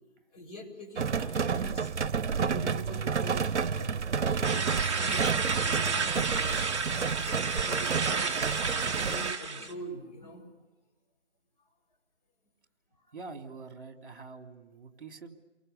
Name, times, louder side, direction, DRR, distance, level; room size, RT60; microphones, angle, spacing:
voice 1, 0.3-1.9 2.3-4.0 4.3-6.7 7.3-10.5 13.1-13.2, equal, 35° left, 0 dB, 7.3 m, -44 dB
sound 1, 1.0-9.3, right 6 dB, 85° right, 0.8 m, -30 dB
sound 2, 4.4-9.7, right 4 dB, 25° right, 1.4 m, -31 dB
voice 2, 13.1-15.4, right 4 dB, 50° right, 5 dB, 3.3 m, -45 dB
29.5 x 23.0 x 6.9 m, 1.2 s
hypercardioid pair, 165°, 34 cm